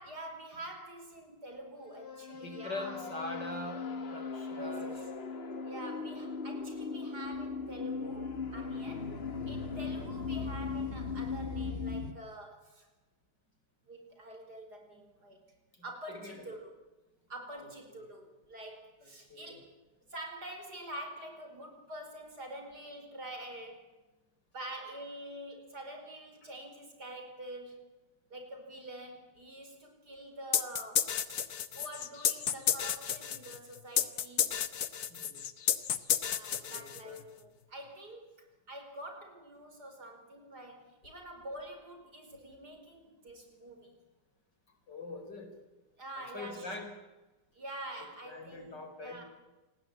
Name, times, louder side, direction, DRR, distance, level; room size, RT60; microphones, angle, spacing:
voice 1, 0.0-3.0 4.5-5.1 5.7-9.1 9.5-12.9 13.9-15.4 15.8-16.7 17.3-19.7 20.1-23.8 24.5-27.9 28.3-31.4 31.7-34.5 36.2-38.3 38.7-43.9 46.0-46.8 47.5-49.2, right 1 dB, 65° right, 4 dB, 5.4 m, -46 dB
sound 1, 1.8-12.1, left 4 dB, 40° left, 1.6 m, -38 dB
voice 2, 2.4-4.9 9.7-9.8 15.7-16.4 19.0-19.6 35.1-35.4 36.5-37.2 44.9-45.5 46.2-46.9 48.2-49.2, left 2 dB, 80° left, 6 dB, 5.3 m, -43 dB
sound 2, 30.5-37.2, left 9 dB, 65° left, 1.6 m, -31 dB
27.5 x 20.0 x 8.8 m, 1.1 s
omnidirectional pair, 1.8 m